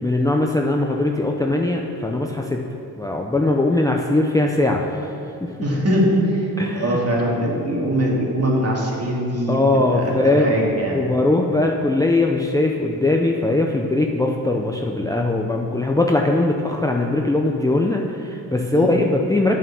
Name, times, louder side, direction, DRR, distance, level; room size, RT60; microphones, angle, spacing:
voice 1, 0.0-2.6 3.0-5.1 5.4-5.7 6.6-7.0 9.5-10.5 10.9-19.6, left 2 dB, 10° left, 1 dB, 0.6 m, -20 dB
voice 2, 5.6-9.6 9.9-11.0 18.7-18.9, equal, 40° right, -3 dB, 2.7 m, -22 dB
8.7 x 7.3 x 7.0 m, 2.8 s
cardioid pair, 95°, 38 cm